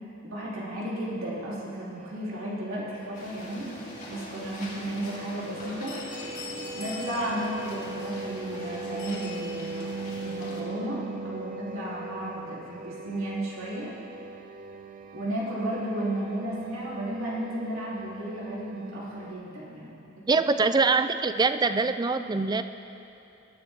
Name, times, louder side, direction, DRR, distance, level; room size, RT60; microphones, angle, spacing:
voice 1, 0.2-3.7 4.1-6.0 6.7-13.9 15.1-20.0, right 1 dB, 85° right, -7 dB, 3.3 m, -34 dB
sound 1, 2.0-19.3, right 3 dB, 40° right, 0.7 m, -40 dB
sound 2, 3.1-10.6, left 2 dB, 40° left, 2.8 m, -41 dB
voice 2, 20.3-22.6, right 4 dB, 20° right, 10 dB, 0.4 m, -24 dB
20.5 x 9.7 x 3.6 m, 2.7 s
head